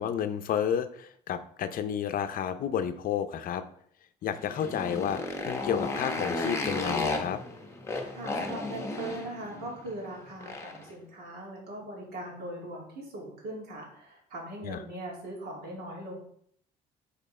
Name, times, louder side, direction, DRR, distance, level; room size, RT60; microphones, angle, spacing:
voice 1, 0.0-3.6 4.2-7.4 14.6-14.8, left 8 dB, 55° left, 10 dB, 0.6 m, -31 dB
Motorcycle, 4.3-10.9, left 2 dB, 15° left, 1.1 m, -34 dB
voice 2, 8.1-16.2, right 1 dB, 70° right, -2 dB, 2.7 m, -40 dB
5.2 x 4.3 x 4.3 m, 0.64 s
cardioid pair, 110°, 17 cm